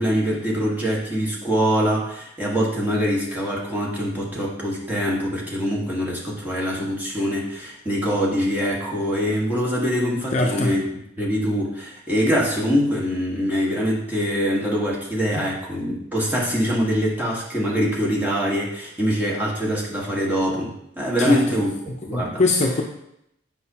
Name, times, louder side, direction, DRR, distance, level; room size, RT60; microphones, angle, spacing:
voice 1, 0.0-10.8 11.2-21.7 22.0-22.4, equal, 10° right, -5 dB, 1.4 m, -23 dB
voice 2, 10.3-10.8 21.2-21.4 21.9-22.8, left 2 dB, 35° left, 1 dB, 0.6 m, -22 dB
7.6 x 5.1 x 2.8 m, 0.77 s
head